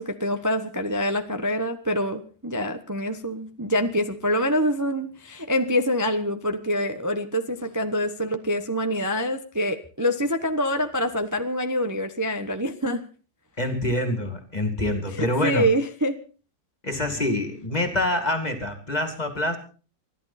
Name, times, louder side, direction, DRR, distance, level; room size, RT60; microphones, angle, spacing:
voice 1, 0.0-13.0 15.1-16.2, equal, 15° right, 7 dB, 0.8 m, -26 dB
voice 2, 13.6-15.7 16.8-19.6, left 1 dB, 20° left, 7 dB, 2.5 m, -26 dB
28.5 x 11.5 x 4.2 m, 0.39 s
omnidirectional pair, 2.0 m